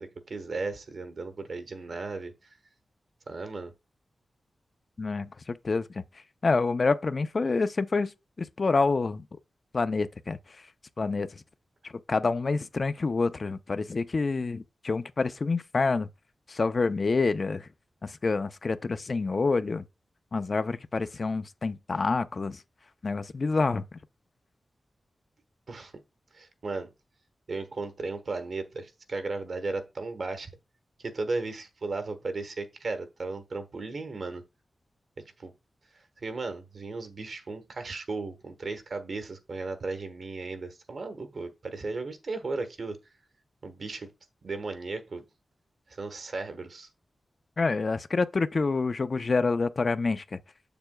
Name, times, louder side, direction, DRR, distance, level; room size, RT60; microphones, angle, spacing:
voice 1, 0.0-2.3 3.3-3.7 25.7-25.9 26.3-26.9 27.5-30.5 31.0-34.4 35.4-35.5 36.2-43.0 43.6-44.1 44.4-45.2 45.9-46.9, right 3 dB, 60° right, 1.2 m, -35 dB
voice 2, 5.0-6.0 6.4-8.1 8.4-9.2 9.7-10.4 11.0-11.4 11.8-16.1 16.5-17.7 18.0-19.8 20.3-22.6 23.0-24.0 47.6-50.4, left 4 dB, 50° left, 0.5 m, -27 dB
7.4 x 6.9 x 2.3 m
wide cardioid pair, 90°, 0 cm